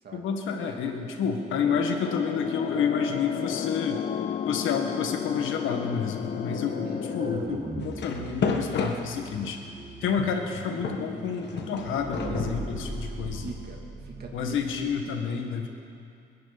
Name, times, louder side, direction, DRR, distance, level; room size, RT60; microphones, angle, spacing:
voice 1, 0.1-4.0 4.5-9.6 10.0-13.5 14.3-15.7, left 6 dB, 80° left, 4 dB, 1.7 m, -29 dB
sound 1, 1.6-7.4, left 9 dB, 40° left, 0.4 m, -33 dB
sound 2, 6.2-15.0, right 2 dB, 30° right, 2.0 m, -39 dB
voice 2, 6.6-7.0 13.4-15.4, right 4 dB, 55° right, 0 dB, 2.7 m, -44 dB
sound 3, 7.8-9.7 10.2-13.5, left 5 dB, 60° left, 1.5 m, -32 dB
25.5 x 10.5 x 4.1 m, 2.5 s
cardioid pair, 90°, 20 cm